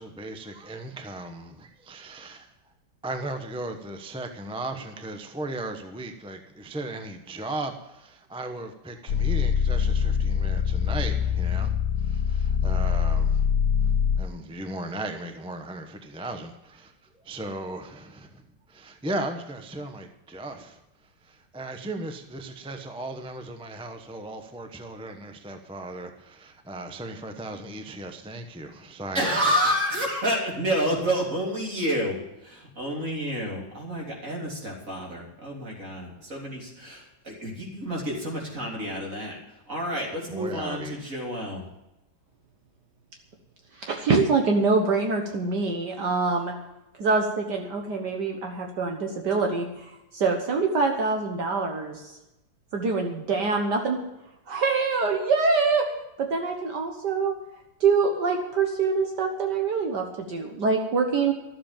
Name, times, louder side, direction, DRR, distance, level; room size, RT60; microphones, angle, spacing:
voice 1, 0.0-2.5 3.0-13.5 13.8-16.9 17.2-18.4 18.7-20.8 21.2-29.6 40.3-41.0, right 2 dB, 5° right, 6 dB, 0.5 m, -37 dB
sound 1, 9.1-14.3, left 7 dB, 65° left, 1.2 m, -24 dB
voice 2, 29.1-32.2 32.4-39.4 39.7-41.6, equal, 45° right, -2 dB, 3.7 m, -29 dB
voice 3, 43.8-46.5 47.0-49.7 50.1-52.1 52.7-54.0 54.5-55.8 56.2-57.3 57.8-61.3, right 4 dB, 65° right, 2 dB, 1.8 m, -24 dB
13.0 x 7.8 x 8.9 m, 0.94 s
omnidirectional pair, 2.0 m